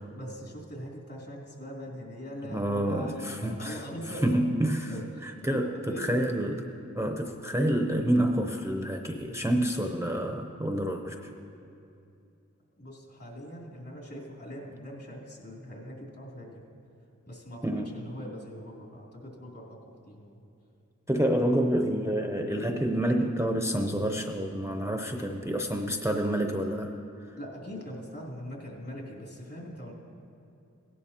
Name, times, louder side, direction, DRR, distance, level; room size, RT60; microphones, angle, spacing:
voice 1, 0.1-4.5 4.9-5.0 5.4-6.2 12.8-16.6 17.3-19.8 20.1-20.4 27.4-29.9, equal, 50° left, -4 dB, 3.0 m, -41 dB
voice 2, 2.4-3.8 4.2-4.9 5.2-6.6 6.9-11.3 17.6-18.0 21.1-26.9, right 1 dB, 10° right, 3 dB, 0.7 m, -28 dB
16.5 x 11.0 x 2.9 m, 2.6 s
cardioid pair, 45°, 30 cm